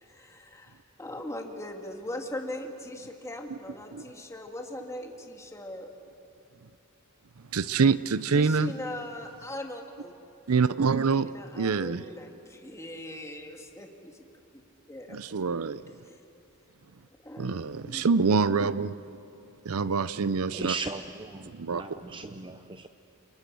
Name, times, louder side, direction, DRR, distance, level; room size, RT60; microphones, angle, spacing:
voice 1, 0.0-5.9 8.3-10.1 11.2-14.2 14.9-15.2 16.1-16.2 17.2-18.0, left 1 dB, 15° left, 2.3 m, -40 dB
voice 2, 7.5-8.7 10.5-12.0 15.1-15.8 17.4-19.0 19.6-20.7 21.5-21.8, right 5 dB, 70° right, 0.6 m, -26 dB
voice 3, 20.5-22.9, right 3 dB, 20° right, 0.7 m, -37 dB
29.0 x 29.0 x 7.0 m
head